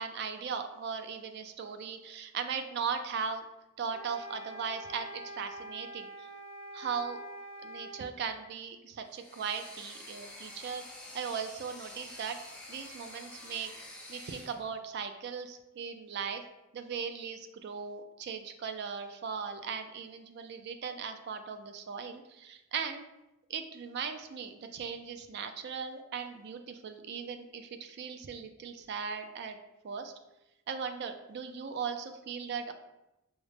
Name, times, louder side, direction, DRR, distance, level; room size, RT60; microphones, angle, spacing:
voice 1, 0.0-3.4 3.8-6.3 6.7-7.2 7.6-10.8 11.1-12.4 12.7-13.7 14.1-16.4 16.7-23.1 23.5-29.6 29.8-30.1 30.7-32.7, right 6 dB, 55° right, 8 dB, 0.3 m, -38 dB
sound 1, 3.9-8.1, right 1 dB, 70° left, 0.5 m, -45 dB
sound 2, 9.1-14.6, left 1 dB, 5° left, 0.7 m, -48 dB
4.9 x 2.1 x 3.2 m, 0.94 s
head